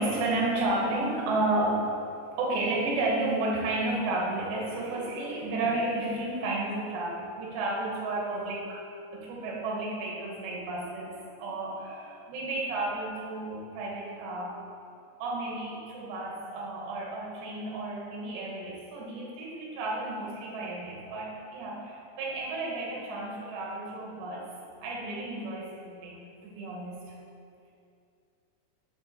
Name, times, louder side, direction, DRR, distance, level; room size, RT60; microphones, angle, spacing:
voice 1, 0.0-1.9 2.3-8.8 9.1-14.6 15.2-24.5 24.8-27.0, right 2 dB, 70° right, -2 dB, 3.2 m, -32 dB
6.7 x 5.3 x 5.7 m, 2.5 s
omnidirectional pair, 5.5 m